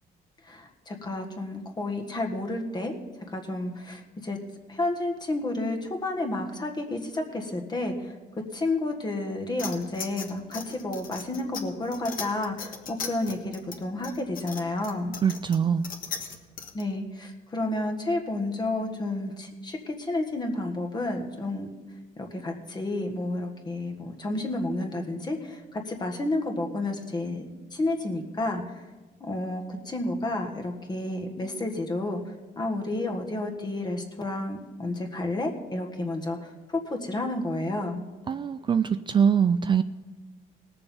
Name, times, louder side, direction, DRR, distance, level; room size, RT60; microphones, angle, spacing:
voice 1, 0.4-2.9 3.3-4.4 4.7-8.1 8.5-15.1 16.7-21.7 22.2-27.4 27.7-28.8 29.2-38.0, left 2 dB, 25° left, 4 dB, 1.6 m, -31 dB
sound 1, 9.6-16.8, left 6 dB, 55° left, 1.6 m, -39 dB
voice 2, 15.2-15.9 38.3-39.8, right 7 dB, 30° right, 11 dB, 0.3 m, -23 dB
18.5 x 6.9 x 5.6 m, 1.2 s
cardioid pair, 110°, 17 cm